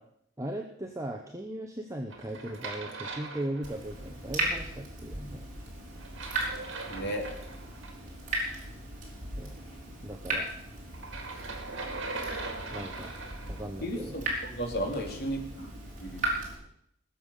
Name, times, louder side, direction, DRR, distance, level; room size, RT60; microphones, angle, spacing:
voice 1, 0.4-5.4 9.4-9.6 10.0-10.5 12.7-13.1 13.5-14.2, right 1 dB, 15° right, 2 dB, 0.9 m, -38 dB
sound 1, 2.1-4.1 6.0-7.9 10.9-13.6, right 3 dB, 60° right, 2.7 m, -40 dB
Water tap faucet / Drip, 3.6-16.5, right 2 dB, 35° right, 4.3 m, -37 dB
voice 2, 6.9-7.3 13.8-15.7 16.0-16.3, equal, 50° left, 1 dB, 3.0 m, -34 dB
20.0 x 7.3 x 6.6 m, 0.72 s
head